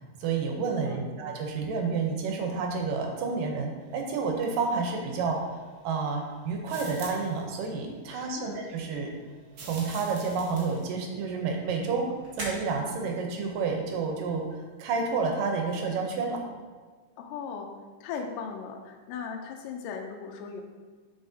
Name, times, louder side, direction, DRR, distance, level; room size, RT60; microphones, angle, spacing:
voice 1, 0.2-5.4 5.8-9.1 9.6-12.1 12.4-16.4, right 4 dB, 80° right, 2 dB, 2.4 m, -30 dB
voice 2, 0.8-1.1 8.1-8.6 17.2-17.7 18.0-20.6, left 6 dB, 80° left, 2 dB, 2.2 m, -38 dB
sound 1, 3.8-15.4, right 1 dB, 25° right, 1.5 m, -49 dB
sound 2, 6.7-7.4 9.5-10.9, right 2 dB, 55° right, 2.1 m, -44 dB
7.2 x 5.6 x 2.7 m, 1.5 s
omnidirectional pair, 3.9 m